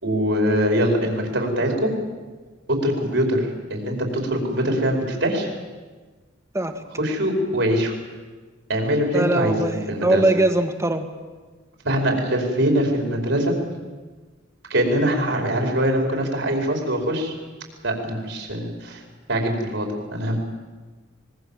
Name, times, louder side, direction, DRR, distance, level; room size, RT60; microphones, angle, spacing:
voice 1, 0.0-1.9 2.7-5.5 7.0-7.9 8.7-10.2 11.8-13.6 14.7-17.3 17.8-19.0 19.3-20.4, equal, 70° right, 2 dB, 5.1 m, -23 dB
voice 2, 9.1-11.1, right 1 dB, 15° right, 6 dB, 1.8 m, -21 dB
24.5 x 21.5 x 7.5 m, 1.3 s
head